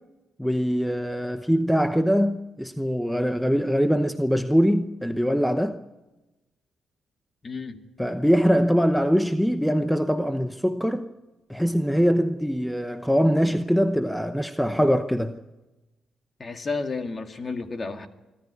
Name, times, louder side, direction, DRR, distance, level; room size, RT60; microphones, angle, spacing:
voice 1, 0.4-5.8 8.0-11.1 11.5-15.4, equal, ahead, 0.9 m, -23 dB
voice 2, 7.4-7.8 16.4-18.1, left 4 dB, 35° left, 2.1 m, -31 dB
25.0 x 13.0 x 9.6 m
cardioid pair, 90°, 0 cm